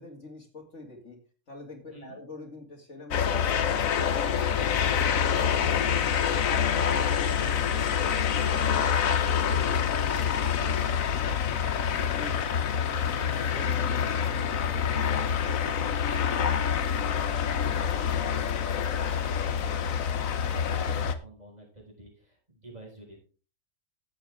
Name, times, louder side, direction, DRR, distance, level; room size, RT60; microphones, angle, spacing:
voice 1, 0.0-5.6 7.3-7.8 12.1-12.4, left 2 dB, 55° left, 1 dB, 2.6 m, -46 dB
sound 1, 3.1-21.2, left 8 dB, 70° left, 1.3 m, -26 dB
voice 2, 6.1-7.2 7.8-8.3 8.5-12.5 12.9-23.2, right 1 dB, 30° right, -2 dB, 5.8 m, -48 dB
15.0 x 8.2 x 3.6 m, 0.36 s
omnidirectional pair, 1.5 m